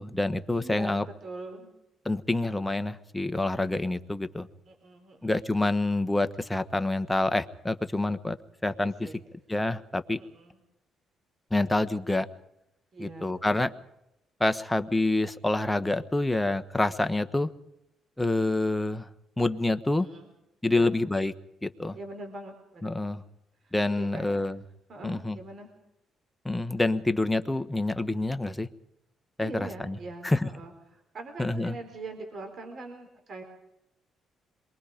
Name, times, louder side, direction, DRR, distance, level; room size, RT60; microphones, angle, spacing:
voice 1, 0.0-1.0 2.0-4.5 5.2-8.4 8.6-9.1 9.5-10.2 11.5-12.3 13.0-13.7 14.4-17.5 18.2-19.1 19.4-20.1 20.6-21.3 21.6-22.0 22.8-23.2 23.7-24.6 25.0-25.4 26.4-28.7 29.4-30.0 30.2-30.5 31.4-31.7, left 2 dB, 10° left, 10 dB, 1.3 m, -27 dB
voice 2, 0.6-1.7 4.7-5.3 8.8-9.1 10.2-10.6 12.9-13.7 20.0-20.3 20.7-20.9 21.9-23.2 23.6-24.4 24.9-25.7 29.4-30.7 31.1-33.4, right 2 dB, 50° right, 5 dB, 4.3 m, -42 dB
27.5 x 23.0 x 5.2 m, 0.84 s
cardioid pair, 90°, 0 cm